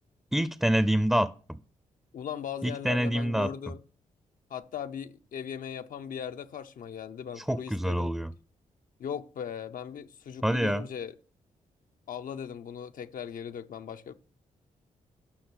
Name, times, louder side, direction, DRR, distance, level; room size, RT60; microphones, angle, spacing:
voice 1, 0.3-1.6 2.6-3.5 7.4-8.3 10.4-10.8, equal, 5° right, 0.5 m, -26 dB
voice 2, 2.1-3.8 4.5-8.1 9.0-11.1 12.1-14.1, left 8 dB, 75° left, 0.8 m, -38 dB
10.5 x 5.9 x 6.3 m
cardioid pair, 80°, 14 cm